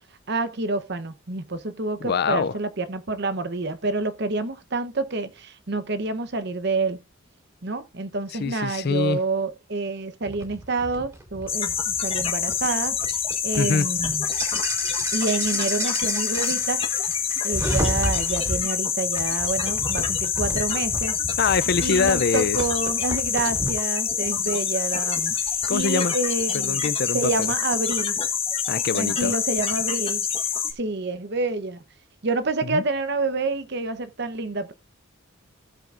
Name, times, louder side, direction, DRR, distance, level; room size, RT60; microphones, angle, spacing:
voice 1, 0.3-7.0 7.6-13.0 13.4-14.3 15.1-16.8 17.4-21.2 21.8-26.8 27.1-28.2 28.9-30.3 30.8-31.8 32.2-34.7, right 3 dB, 55° right, 0.9 m, -28 dB
voice 2, 2.0-2.5 8.4-9.2 13.6-13.9 21.4-22.6 25.7-26.1 26.5-27.2 28.7-29.3 32.7-32.8, left 5 dB, 50° left, 0.4 m, -24 dB
sound 1, 10.2-18.6 19.2-23.8 24.2-25.8, right 1 dB, 15° right, 2.7 m, -33 dB
sound 2, 11.5-30.7, left 7 dB, 30° left, 1.4 m, -26 dB
16.0 x 7.4 x 2.5 m
head